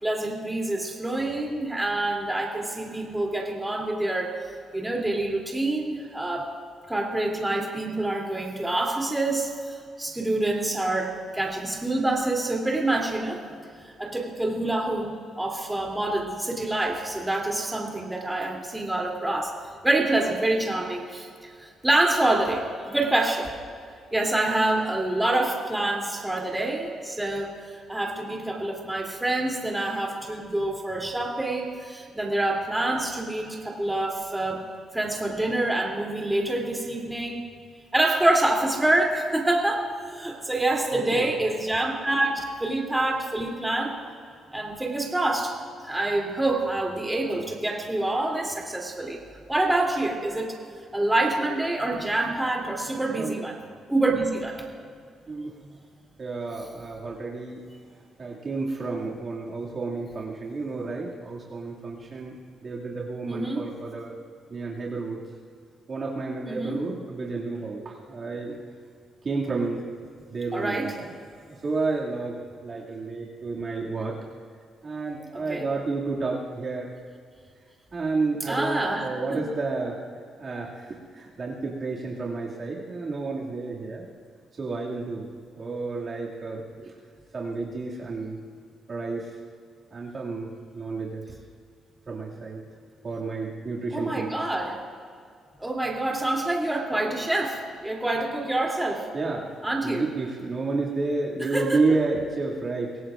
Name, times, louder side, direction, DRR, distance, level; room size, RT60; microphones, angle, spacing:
voice 1, 0.0-4.4 4.7-6.5 6.9-13.4 13.8-19.5 19.8-21.3 21.6-23.5 24.1-34.6 34.9-37.4 37.9-44.0 44.5-45.5 45.8-49.2 49.5-50.5 50.9-53.6 53.9-54.6 63.3-63.7 66.5-66.9 70.5-70.9 75.3-75.7 78.5-79.1 93.9-94.8 95.6-99.1 99.6-100.0 101.4-101.8, right 2 dB, 10° right, -1 dB, 3.0 m, -26 dB
voice 2, 40.9-41.3 53.2-53.4 55.3-55.5 56.2-57.6 58.2-64.1 64.5-65.2 65.9-68.6 69.2-69.9 70.3-71.1 71.5-74.1 74.8-76.9 77.9-80.0 80.4-84.1 84.6-85.3 85.5-86.9 87.3-88.4 88.9-89.4 89.9-91.3 92.1-92.6 93.0-94.3 99.1-99.5 99.8-103.0, right 3 dB, 40° right, -4 dB, 2.3 m, -30 dB
23.5 x 17.0 x 2.5 m, 2.2 s
cardioid pair, 90°, 0 cm